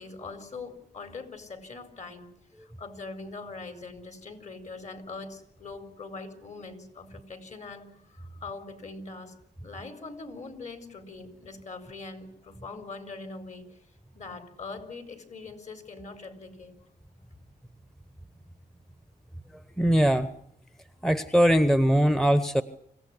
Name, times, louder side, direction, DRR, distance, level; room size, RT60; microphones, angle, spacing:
voice 1, 0.0-2.3 2.5-9.4 9.6-13.8 14.1-16.7, left 3 dB, 45° left, 9 dB, 4.6 m, -42 dB
voice 2, 19.8-20.3 21.0-22.6, equal, 5° left, 12 dB, 1.1 m, -21 dB
26.0 x 16.5 x 10.0 m, 0.74 s
cardioid pair, 95°, 17 cm